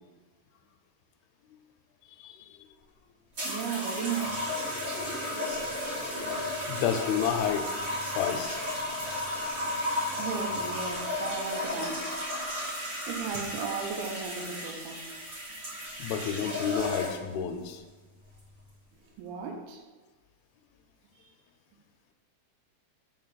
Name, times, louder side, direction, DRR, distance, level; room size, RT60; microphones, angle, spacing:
voice 1, 2.2-2.6 6.7-7.7 8.1-8.6 16.0-17.8, left 8 dB, 85° left, 6 dB, 2.3 m, -30 dB
sound 1, 3.3-17.4 18.2-18.6, left 1 dB, 35° right, 2.2 m, -34 dB
voice 2, 3.4-4.6 10.2-12.1 13.1-15.1 19.2-19.8, right 6 dB, 90° right, 3 dB, 2.7 m, -35 dB
5.7 x 4.7 x 3.9 m, 1.3 s
omnidirectional pair, 4.4 m